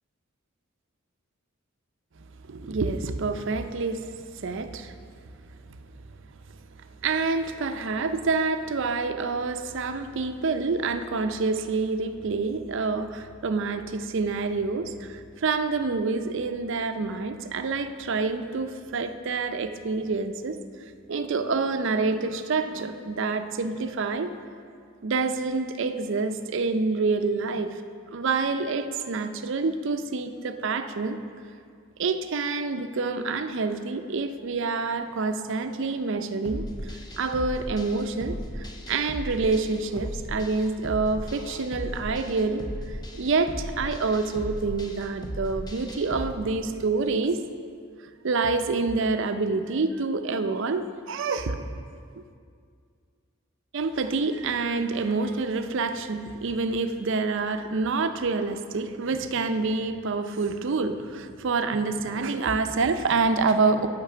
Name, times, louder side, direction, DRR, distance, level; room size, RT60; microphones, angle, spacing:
voice 1, 2.5-4.9 7.0-20.6 21.1-24.3 25.0-27.8 28.1-31.2 32.0-47.4 48.2-51.7 53.7-63.9, right 4 dB, 60° right, 9 dB, 0.5 m, -27 dB
sound 1, 36.4-46.3, equal, 20° left, 0.7 m, -36 dB
9.0 x 5.9 x 6.7 m, 2.2 s
head